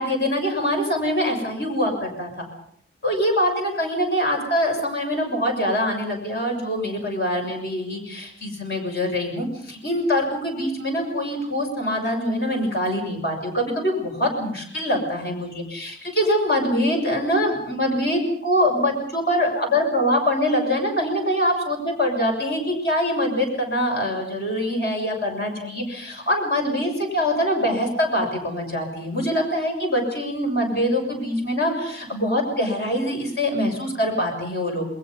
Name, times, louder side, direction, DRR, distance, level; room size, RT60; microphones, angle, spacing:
voice 1, 0.0-2.5 3.0-34.9, equal, 55° left, 3 dB, 6.8 m, -24 dB
28.5 x 21.5 x 5.5 m, 0.63 s
head